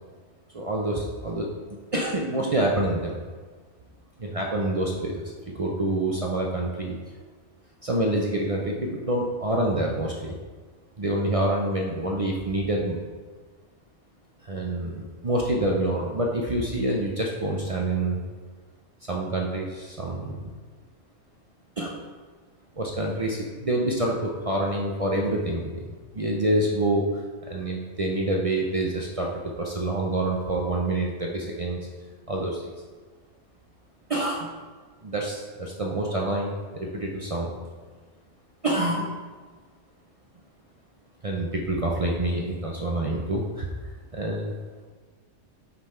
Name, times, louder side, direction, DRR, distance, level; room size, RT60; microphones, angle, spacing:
voice 1, 0.5-3.2 4.2-7.0 7.8-10.4 11.0-13.0 14.4-18.2 19.1-20.4 21.8-22.0 22.8-25.8 26.1-31.8 32.3-32.7 34.1-34.5 35.0-37.5 38.6-39.2 41.2-43.7 44.1-44.5, right 1 dB, 45° right, -1 dB, 0.5 m, -27 dB
5.8 x 3.9 x 4.3 m, 1.4 s
omnidirectional pair, 1.3 m